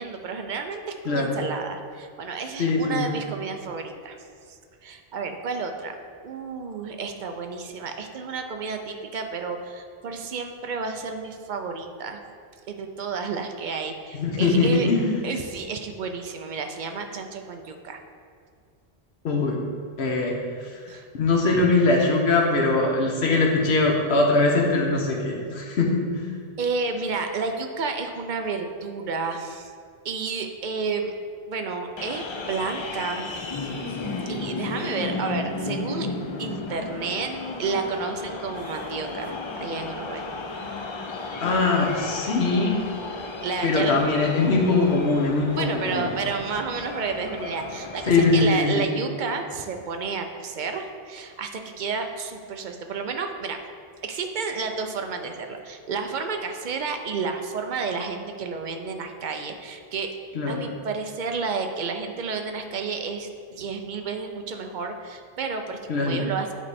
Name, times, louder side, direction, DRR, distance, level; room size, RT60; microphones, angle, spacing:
voice 1, 0.0-4.2 4.5-5.9 6.2-12.2 12.7-14.9 15.2-18.0 20.9-21.1 26.6-29.7 30.0-31.1 31.5-33.7 34.3-36.1 36.4-40.3 43.4-44.0 45.5-53.6 54.0-60.1 60.5-66.5, right 4 dB, 55° right, 5 dB, 0.6 m, -31 dB
voice 2, 1.0-1.4 2.6-3.1 14.2-15.2 19.2-19.6 20.0-20.7 21.1-26.3 41.4-42.8 43.6-46.1 48.1-48.9 60.3-60.6 65.9-66.2, left 3 dB, 75° left, 0 dB, 1.2 m, -22 dB
sound 1, 32.0-48.5, left 3 dB, 50° left, 0.3 m, -34 dB
9.0 x 3.2 x 4.1 m, 2.2 s
omnidirectional pair, 1.1 m